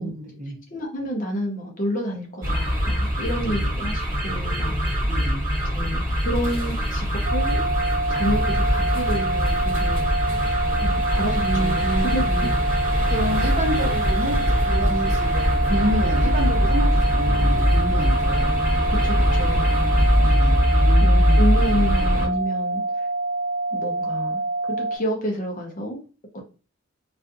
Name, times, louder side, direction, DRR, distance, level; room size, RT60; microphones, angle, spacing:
voice 1, 0.0-0.6 3.4-3.7 5.0-5.4 11.4-12.5 13.1-18.5 20.2-21.4, equal, 35° right, 0 dB, 0.7 m, -29 dB
voice 2, 0.7-4.8 5.7-7.7 8.1-10.0 10.8-12.2 18.9-19.8 21.0-22.8 23.7-24.4 24.7-26.0, equal, 40° left, 1 dB, 0.6 m, -29 dB
sound 1, 2.4-22.3, equal, 15° right, 1.3 m, -22 dB
sound 2, 7.2-25.0, right 2 dB, 90° right, 0.5 m, -26 dB
2.5 x 2.4 x 2.4 m, 0.35 s
head